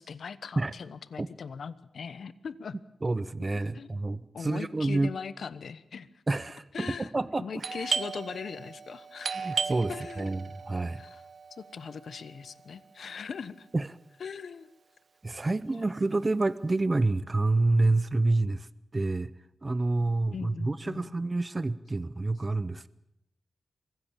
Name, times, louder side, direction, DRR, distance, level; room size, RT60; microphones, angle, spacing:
voice 1, 0.0-2.8 3.7-6.1 6.7-7.1 7.4-9.5 9.9-10.4 11.0-11.2 11.6-13.7 14.2-14.7 15.5-15.6 20.3-21.2, left 6 dB, 70° left, 16 dB, 1.0 m, -40 dB
voice 2, 3.0-5.1 6.3-7.6 9.3-11.0 13.7-13.9 15.2-18.7 18.9-19.3 19.6-22.9, right 2 dB, 30° right, 16 dB, 0.7 m, -28 dB
Doorbell, 7.6-13.0, right 5 dB, 60° right, 1.0 m, -36 dB
24.0 x 16.0 x 8.9 m, 0.84 s
cardioid pair, 80°, 0 cm